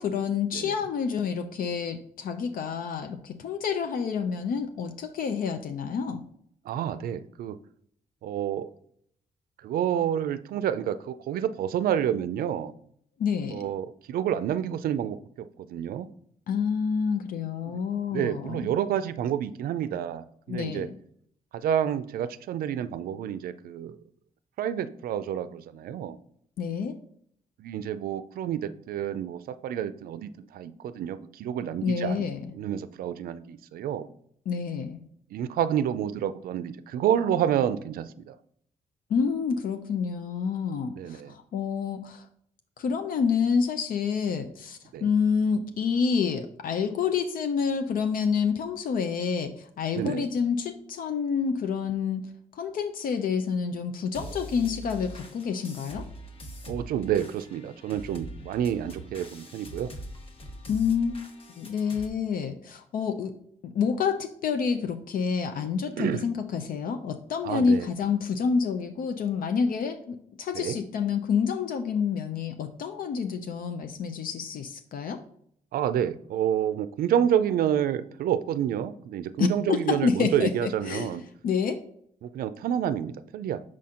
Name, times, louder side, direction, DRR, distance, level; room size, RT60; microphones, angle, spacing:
voice 1, 0.0-6.2 13.2-13.7 16.5-18.7 20.5-21.0 26.6-27.0 31.8-32.5 34.5-35.0 39.1-42.3 42.8-52.2 52.6-56.1 60.7-61.2 61.6-63.3 63.6-75.2 79.4-81.2 81.4-81.8, left 6 dB, 70° left, 7 dB, 0.5 m, -28 dB
voice 2, 6.7-7.6 8.2-8.7 9.6-12.7 13.5-16.1 17.7-17.8 18.1-20.9 21.5-24.0 24.6-26.2 27.6-32.2 32.5-34.1 35.3-38.4 40.9-41.3 44.9-45.1 50.0-50.3 56.7-59.9 66.0-66.2 67.4-67.9 70.5-70.8 75.7-81.2 82.2-83.6, right 9 dB, 90° right, 13 dB, 0.4 m, -29 dB
sound 1, 54.1-62.1, equal, 40° left, 1.1 m, -43 dB
6.3 x 4.3 x 3.7 m, 0.67 s
cardioid pair, 105°, 15 cm